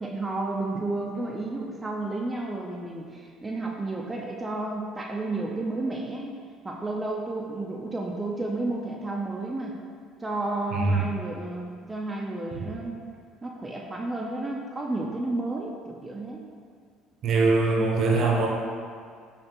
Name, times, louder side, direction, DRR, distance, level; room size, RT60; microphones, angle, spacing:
voice 1, 0.0-9.7 10.2-13.1 13.4-16.5, right 2 dB, 20° right, -1 dB, 0.4 m, -32 dB
voice 2, 10.7-11.0 17.2-18.5, right 3 dB, 55° right, -1 dB, 0.7 m, -22 dB
5.3 x 2.4 x 2.9 m, 2.1 s
supercardioid pair, 75°, 0 cm